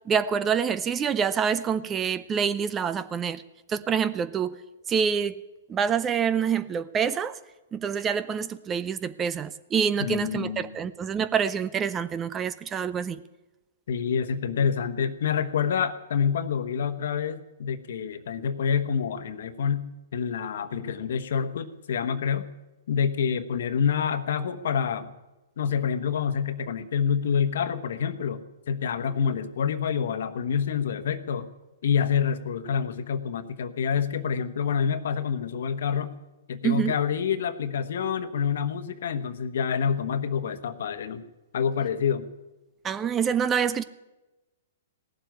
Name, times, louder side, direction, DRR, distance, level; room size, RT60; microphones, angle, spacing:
voice 1, 0.1-3.4 3.7-4.6 4.9-5.4 5.7-7.4 7.7-13.2 36.6-37.0 42.8-43.8, right 7 dB, 20° right, 15 dB, 0.6 m, -26 dB
voice 2, 10.0-10.7 13.9-19.8 20.1-22.5 22.9-25.1 25.6-28.4 28.7-31.5 31.8-36.1 36.5-41.2 41.5-42.2, left 7 dB, 65° left, 11 dB, 1.2 m, -27 dB
17.0 x 7.7 x 9.2 m, 1.0 s
hypercardioid pair, 130°, 0 cm